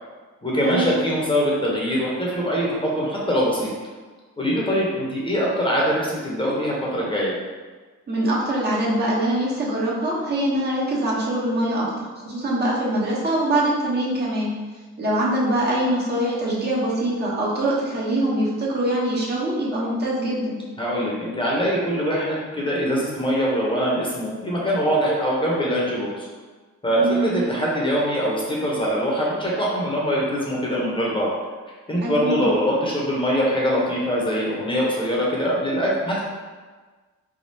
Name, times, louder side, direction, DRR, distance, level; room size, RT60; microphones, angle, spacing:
voice 1, 0.4-3.7 4.4-7.3 20.8-26.3 26.8-31.3 31.9-36.2, equal, 15° left, -5 dB, 0.8 m, -23 dB
voice 2, 8.1-14.5 15.0-20.6 27.0-27.4 32.0-32.5, right 1 dB, 35° right, -6 dB, 0.8 m, -23 dB
3.5 x 2.3 x 2.7 m, 1.4 s
cardioid pair, 90°, 30 cm